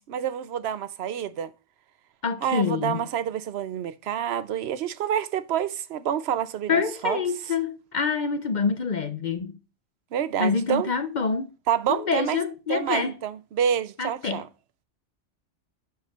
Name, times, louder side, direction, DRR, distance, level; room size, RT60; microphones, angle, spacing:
voice 1, 0.1-1.5 2.4-7.2 10.1-10.9 11.7-12.4 12.7-14.5, right 9 dB, 65° right, 0.8 m, -28 dB
voice 2, 2.2-3.0 6.7-9.5 10.4-11.5 11.9-13.1 14.0-14.4, left 5 dB, 50° left, 0.6 m, -26 dB
9.2 x 3.2 x 6.4 m
omnidirectional pair, 1.3 m